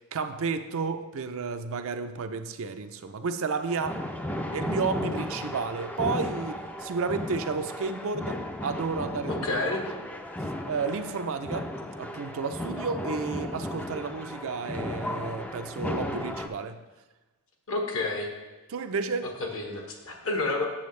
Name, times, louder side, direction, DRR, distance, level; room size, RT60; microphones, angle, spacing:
voice 1, 0.0-4.0 4.5-9.5 10.6-11.7 12.0-16.8 18.7-19.3, right 4 dB, 65° right, 8 dB, 0.5 m, -32 dB
sound 1, 3.6-16.5, left 1 dB, 5° left, 0.4 m, -35 dB
voice 2, 9.3-9.8 17.7-18.3 19.2-20.7, left 2 dB, 70° left, 1 dB, 1.3 m, -30 dB
8.5 x 7.1 x 3.2 m, 1.2 s
head